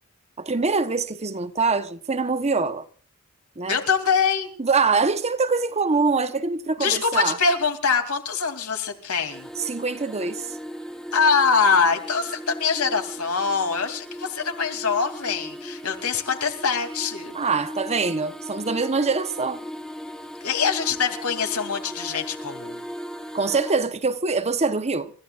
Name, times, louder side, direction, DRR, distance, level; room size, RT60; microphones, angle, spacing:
voice 1, 0.4-2.8 3.6-3.8 4.6-7.4 9.6-10.5 17.3-19.6 23.3-25.1, right 4 dB, 30° right, 1.0 m, -24 dB
voice 2, 3.7-4.5 6.8-9.5 11.1-17.3 20.4-22.8, left 5 dB, 80° left, 2.9 m, -23 dB
sound 1, 9.3-23.7, equal, 5° left, 1.2 m, -38 dB
29.5 x 15.0 x 2.5 m
head